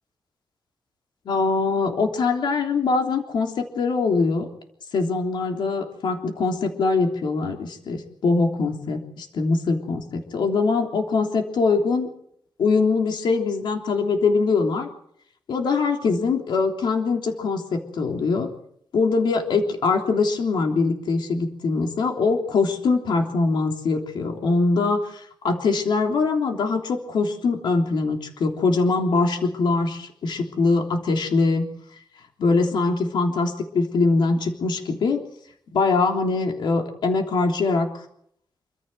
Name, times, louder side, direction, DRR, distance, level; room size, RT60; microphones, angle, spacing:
voice 1, 1.2-4.5 4.9-12.1 12.6-14.9 15.5-18.5 18.9-31.7 32.4-35.2 35.7-38.0, left 4 dB, 90° left, 3 dB, 3.4 m, -23 dB
27.0 x 15.0 x 7.8 m, 0.70 s
cardioid pair, 90°, 8 cm